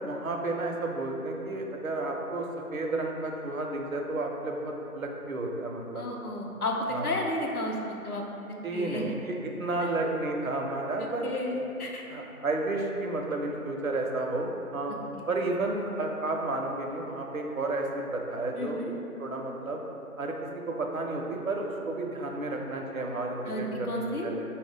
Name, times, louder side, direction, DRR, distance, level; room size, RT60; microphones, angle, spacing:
voice 1, 0.0-6.1 6.9-7.1 8.6-11.3 12.1-15.0 15.3-18.8 19.2-19.8 20.2-20.4 20.7-24.4, right 2 dB, 65° right, 1 dB, 0.5 m, -32 dB
voice 2, 5.9-7.8 8.0-8.2 8.7-9.1 10.0-10.1 11.0-12.0 18.6-18.9 23.5-24.3, left 1 dB, 75° left, 0 dB, 0.7 m, -32 dB
4.3 x 2.1 x 3.7 m, 3.0 s
figure-of-eight pair, 175°, 45 cm